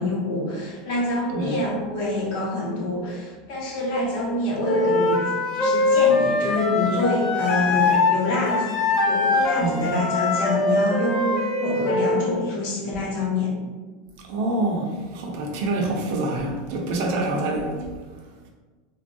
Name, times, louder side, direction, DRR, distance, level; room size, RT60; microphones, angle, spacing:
voice 1, 0.0-5.2 5.5-8.7 9.1-13.6, left 2 dB, 65° left, -2 dB, 0.9 m, -26 dB
voice 2, 1.3-1.6 9.6-9.8 14.2-17.9, right 2 dB, 65° right, 0 dB, 0.6 m, -26 dB
Wind instrument woodwind instrument, 4.6-8.2 8.5-12.3, left 3 dB, 45° left, 0.5 m, -22 dB
3.3 x 2.3 x 2.6 m, 1.3 s
supercardioid pair, 140°, 0 cm